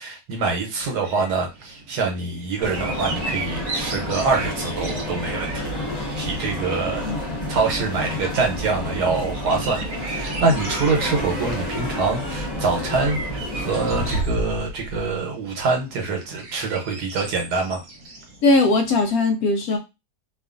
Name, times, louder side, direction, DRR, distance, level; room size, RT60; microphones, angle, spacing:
voice 1, 0.0-7.1 7.5-17.8, right 4 dB, 85° right, 2 dB, 1.4 m, -25 dB
sound 1, 0.6-19.2, right 2 dB, 60° right, 1.0 m, -36 dB
sound 2, 2.6-14.2, left 1 dB, 30° left, 1.1 m, -29 dB
voice 2, 7.0-7.5 18.4-19.8, left 2 dB, 70° left, 4 dB, 1.0 m, -20 dB
2.9 x 2.4 x 2.4 m, 0.24 s
omnidirectional pair, 1.7 m